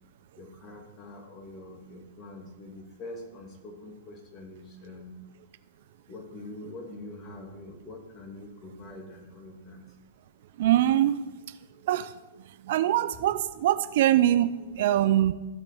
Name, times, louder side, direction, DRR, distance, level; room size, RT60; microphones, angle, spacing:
voice 1, 0.4-5.2 6.1-9.8, left 2 dB, 30° left, 2 dB, 2.9 m, -44 dB
voice 2, 10.6-11.2 11.8-12.1 12.7-15.3, right 12 dB, 60° right, 13 dB, 0.6 m, -23 dB
15.0 x 5.2 x 6.2 m, 1.1 s
hypercardioid pair, 120°, 0 cm